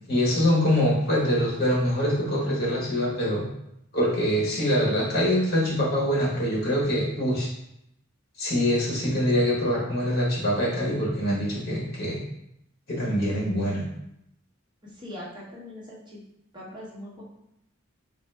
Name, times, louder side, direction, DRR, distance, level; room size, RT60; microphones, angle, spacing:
voice 1, 0.1-3.4 3.9-7.5 8.4-12.2 12.9-13.8, equal, 55° left, -4 dB, 1.4 m, -24 dB
voice 2, 14.8-16.2 16.5-17.2, left 1 dB, 25° right, -6 dB, 1.1 m, -41 dB
4.1 x 2.5 x 3.4 m, 0.78 s
head